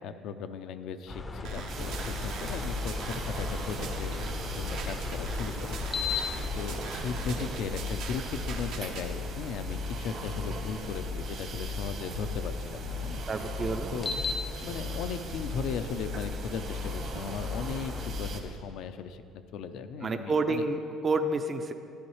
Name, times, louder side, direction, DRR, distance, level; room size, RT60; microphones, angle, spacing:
voice 1, 0.0-13.2 13.9-20.6, left 6 dB, 70° left, 10 dB, 0.5 m, -37 dB
sound 1, 1.1-12.4 13.9-18.1, left 4 dB, 25° left, 0.5 m, -40 dB
sound 2, 1.4-9.1, right 4 dB, 75° right, 1.0 m, -42 dB
sound 3, 1.7-18.4, left 1 dB, 55° right, 1.3 m, -36 dB
voice 2, 13.3-13.9 20.0-21.7, right 3 dB, 30° right, 7 dB, 0.5 m, -29 dB
11.5 x 9.7 x 3.2 m, 2.6 s
cardioid pair, 115°, 0 cm